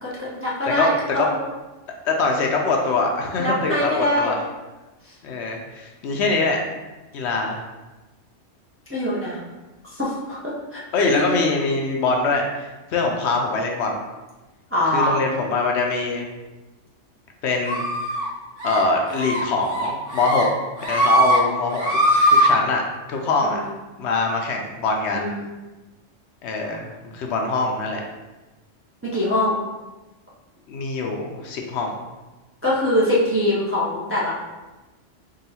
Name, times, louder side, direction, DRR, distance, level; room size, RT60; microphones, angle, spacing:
voice 1, 0.0-1.3 3.4-4.4 5.0-5.1 8.9-9.4 9.8-11.3 14.7-15.2 23.4-23.7 25.1-25.4 29.1-29.5 32.6-34.3, left 1 dB, 15° right, -7 dB, 0.4 m, -23 dB
voice 2, 0.8-1.3 2.0-4.4 5.2-6.6 7.1-7.6 10.9-14.0 14.9-16.3 17.4-17.8 18.6-20.5 20.9-22.0 22.3-22.8 23.1-23.6 24.0-25.3 26.4-28.0 30.7-32.0, left 3 dB, 70° left, 1 dB, 0.8 m, -23 dB
sound 1, 17.7-18.2 18.6-18.8 19.1-19.4 19.7-20.4 20.8-21.4 21.7-22.5, equal, 80° right, 1.8 m, -20 dB
3.8 x 2.3 x 4.1 m, 1.1 s
omnidirectional pair, 1.2 m